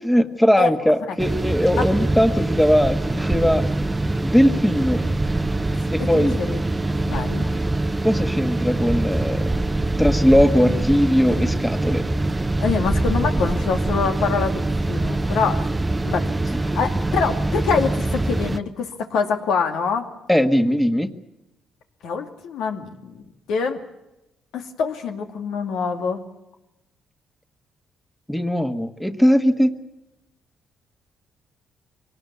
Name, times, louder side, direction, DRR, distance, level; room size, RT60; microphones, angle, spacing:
voice 1, 0.0-3.7 4.2-5.0 5.9-6.4 8.0-9.5 10.0-12.0 20.3-21.1 28.3-29.7, equal, 5° left, 8 dB, 1.5 m, -19 dB
sound 1, 1.2-18.6, right 2 dB, 20° right, 0.8 m, -23 dB
voice 2, 6.0-6.6 7.0-7.6 12.6-15.6 16.0-20.1 22.0-23.2 23.5-23.8 24.5-26.2, left 5 dB, 85° left, 5 dB, 2.5 m, -25 dB
24.0 x 19.0 x 8.4 m, 0.91 s
cardioid pair, 90°, 0 cm